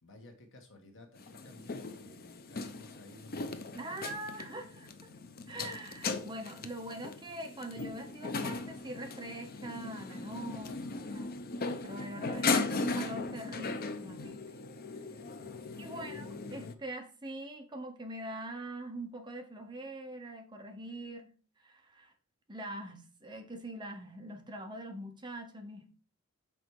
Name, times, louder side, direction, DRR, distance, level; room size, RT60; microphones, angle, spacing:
voice 1, 0.0-3.4 15.3-16.0, left 2 dB, 60° left, 4 dB, 1.6 m, -55 dB
sound 1, 1.2-16.7, left 3 dB, 45° left, 0.7 m, -38 dB
voice 2, 3.7-4.9 5.5-11.4 11.8-14.4 15.8-21.3 21.6-22.1 22.5-25.9, right 1 dB, 20° right, 4 dB, 1.0 m, -43 dB
6.1 x 4.3 x 4.7 m, 0.37 s
head